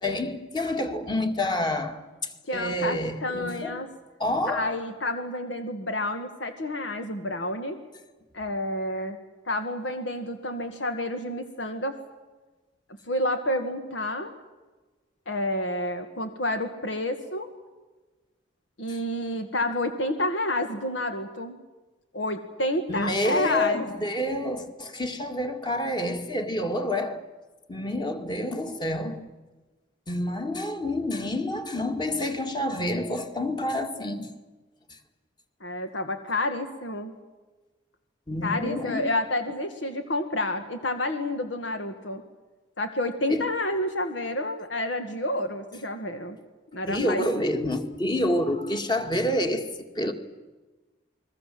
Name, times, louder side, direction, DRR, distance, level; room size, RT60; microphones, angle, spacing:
voice 1, 0.0-3.8 4.2-4.8 22.9-27.3 27.7-29.3 30.1-34.3 34.9-35.0 38.3-39.1 43.3-43.5 46.9-50.1, left 1 dB, 25° left, 2.1 m, -28 dB
voice 2, 2.4-3.9 4.5-7.8 8.3-9.2 9.5-12.0 13.1-14.3 15.3-17.5 18.8-21.6 22.1-23.9 35.6-37.1 38.4-42.2 42.8-46.4 46.7-47.3, left 1 dB, 80° left, 1.9 m, -29 dB
29.0 x 21.5 x 7.8 m
head